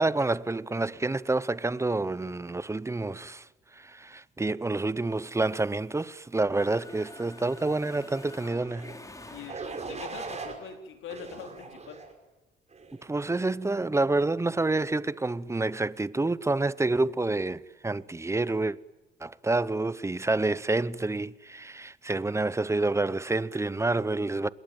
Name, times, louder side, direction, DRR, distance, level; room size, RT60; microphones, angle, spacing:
voice 1, 0.0-3.5 3.7-8.9 13.0-18.8 19.2-24.5, right 2 dB, 15° right, 0.8 m, -28 dB
Mechanisms, 5.2-6.2 6.5-10.0, left 1 dB, 15° left, 3.9 m, -47 dB
sound 1, 8.6-8.9 9.5-10.6 11.1-12.1 12.7-13.1, right 4 dB, 35° right, 5.4 m, -39 dB
voice 2, 9.3-12.0, left 7 dB, 80° left, 4.1 m, -43 dB
27.0 x 21.0 x 9.2 m
cardioid pair, 90°, 20 cm